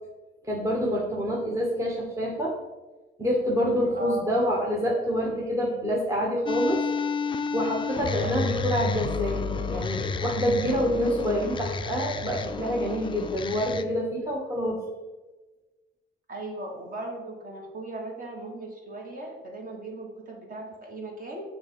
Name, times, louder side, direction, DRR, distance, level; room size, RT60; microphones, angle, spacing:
voice 1, 0.4-2.6 3.2-6.8 7.5-14.8, equal, 15° right, -2 dB, 0.9 m, -27 dB
voice 2, 3.9-4.2 8.2-8.4 16.3-21.4, right 1 dB, 45° right, 0 dB, 1.6 m, -38 dB
sound 1, 6.5-13.8, left 5 dB, 25° left, 0.3 m, -31 dB
6.9 x 2.6 x 5.2 m, 1.2 s
cardioid pair, 90°, 20 cm